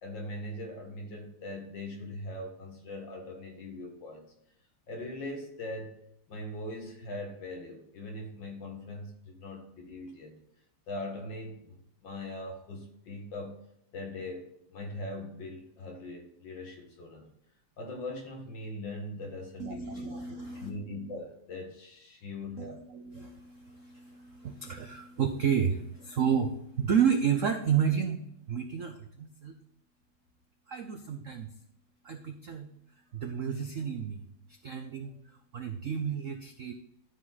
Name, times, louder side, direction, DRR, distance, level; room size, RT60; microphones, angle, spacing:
voice 1, 0.0-4.3 4.9-10.4 10.9-13.6 13.9-17.3 17.8-20.1 20.6-22.8, left 1 dB, 60° left, 2 dB, 2.2 m, -41 dB
voice 2, 19.6-20.7 22.6-29.6 30.7-31.5 32.0-32.7 33.1-35.2 35.5-36.7, right 7 dB, 75° right, 5 dB, 0.7 m, -31 dB
13.0 x 5.0 x 4.0 m, 0.74 s
omnidirectional pair, 2.4 m